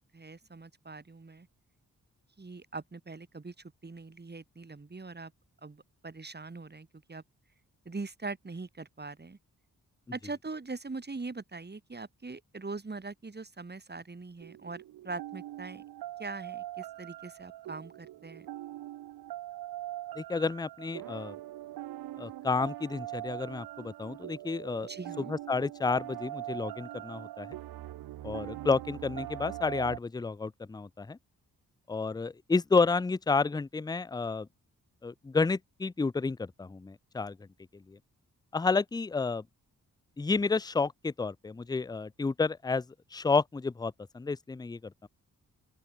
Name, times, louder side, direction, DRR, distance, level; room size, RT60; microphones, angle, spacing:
voice 1, 0.0-1.5 2.4-5.3 5.6-7.2 7.9-9.4 10.1-15.8 16.2-18.5 24.8-25.3, right 3 dB, 30° right, 1.9 m, -42 dB
sound 1, 14.4-30.0, right 14 dB, 85° right, 0.6 m, -42 dB
voice 2, 20.2-21.4 22.2-24.9 25.3-27.5 28.2-31.2 31.9-34.5 35.0-37.4 37.9-38.0 38.5-39.4 40.2-42.8 43.1-45.1, left 4 dB, 10° left, 0.4 m, -30 dB
open air
cardioid pair, 50°, 35 cm